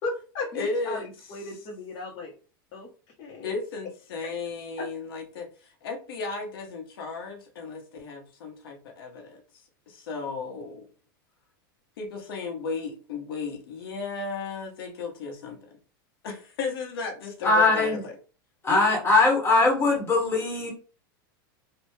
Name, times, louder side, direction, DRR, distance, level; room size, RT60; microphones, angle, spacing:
voice 1, 0.0-2.3 2.7-2.9 3.2-3.6 4.8-4.9, left 3 dB, 45° left, -2 dB, 1.0 m, -36 dB
voice 2, 0.5-1.1 3.4-9.4 9.9-10.9 12.0-15.7 16.2-18.1 18.7-18.9, left 4 dB, 80° left, 1 dB, 1.1 m, -34 dB
voice 3, 17.4-18.0 18.6-20.7, left 3 dB, 20° left, 0 dB, 1.3 m, -21 dB
3.3 x 2.3 x 3.2 m, 0.36 s
supercardioid pair, 125°, 12 cm